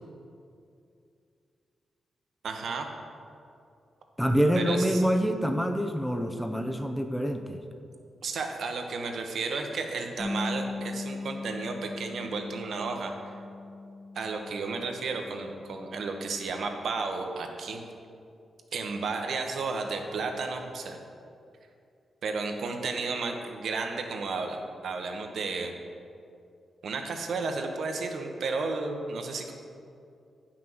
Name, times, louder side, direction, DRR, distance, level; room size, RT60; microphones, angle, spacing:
voice 1, 2.4-2.9 4.6-5.0 8.2-13.3 14.1-17.8 18.7-21.0 22.2-24.6 24.8-25.7 26.8-29.5, right 4 dB, 70° right, 3 dB, 1.0 m, -33 dB
voice 2, 4.2-7.6, equal, 5° left, 5 dB, 0.5 m, -26 dB
Bass guitar, 10.2-16.4, left 2 dB, 35° left, 1.2 m, -39 dB
9.1 x 5.9 x 6.2 m, 2.5 s
wide cardioid pair, 115°, 0 cm